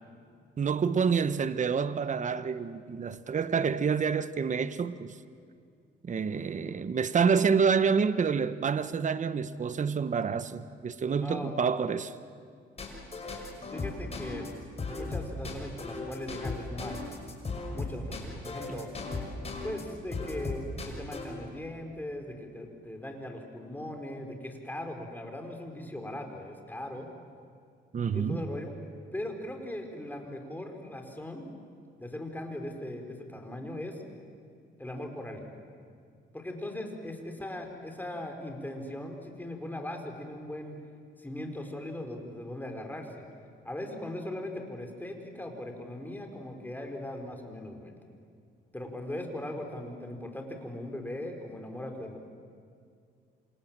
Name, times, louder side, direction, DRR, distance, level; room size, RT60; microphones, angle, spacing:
voice 1, 0.6-5.1 6.0-12.1 27.9-28.4, right 6 dB, 40° right, 1.0 m, -28 dB
voice 2, 11.2-11.6 13.7-14.5 14.9-17.2 17.7-18.9 19.6-27.1 28.1-28.7 29.1-31.5 32.0-34.0 34.8-35.5 36.3-40.8 41.2-43.3 43.6-47.9 48.7-52.2, left 1 dB, 10° left, 4.6 m, -39 dB
sound 1, 12.8-19.8 20.1-21.3, left 3 dB, 30° left, 6.1 m, -36 dB
27.5 x 27.5 x 7.6 m
cardioid pair, 90°, 20 cm